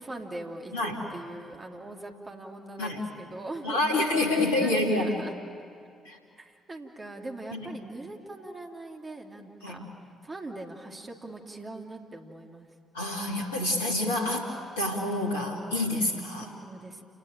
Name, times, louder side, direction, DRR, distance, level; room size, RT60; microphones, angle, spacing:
voice 1, 0.0-5.4 6.4-9.9 10.2-12.7 16.4-17.0, right 2 dB, 30° right, 2 dB, 3.0 m, -41 dB
voice 2, 3.6-5.2 6.0-6.2 7.5-7.7 9.6-9.9 12.9-14.5 14.8-16.5, left 2 dB, 80° left, 0 dB, 2.8 m, -27 dB
29.0 x 19.0 x 9.0 m, 2.3 s
figure-of-eight pair, 45°, 0 cm